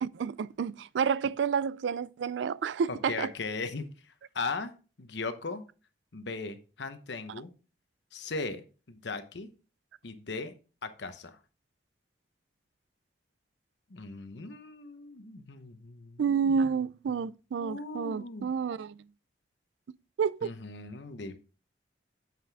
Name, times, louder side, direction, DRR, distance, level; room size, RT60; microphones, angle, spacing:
voice 1, 0.0-3.3 16.2-19.0 20.2-20.5, right 6 dB, 80° right, 0.3 m, -29 dB
voice 2, 2.9-4.7 5.0-5.6 6.1-7.5 8.1-9.5 10.0-10.5 10.8-11.4 13.9-16.2 17.6-18.5 20.4-21.4, left 3 dB, 75° left, 0.9 m, -38 dB
7.5 x 5.8 x 3.4 m
head